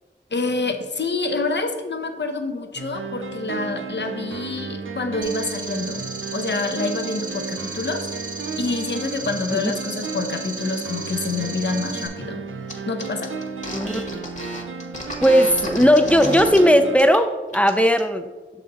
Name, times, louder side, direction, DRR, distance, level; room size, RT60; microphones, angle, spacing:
voice 1, 0.3-6.0 6.3-8.1 8.6-12.5 12.9-13.3, left 3 dB, 60° left, 6 dB, 0.7 m, -27 dB
sound 1, 2.8-17.0, right 4 dB, 75° right, 0.6 m, -33 dB
sound 2, 5.2-12.1, right 2 dB, 40° right, 0.9 m, -35 dB
sound 3, 12.7-12.8 13.0-16.6 16.9-17.2 17.5-18.0, left 1 dB, 35° left, 1.2 m, -32 dB
voice 2, 15.2-18.3, equal, 5° left, 7 dB, 0.5 m, -17 dB
6.4 x 4.1 x 4.0 m, 1.3 s
wide cardioid pair, 65°, 21 cm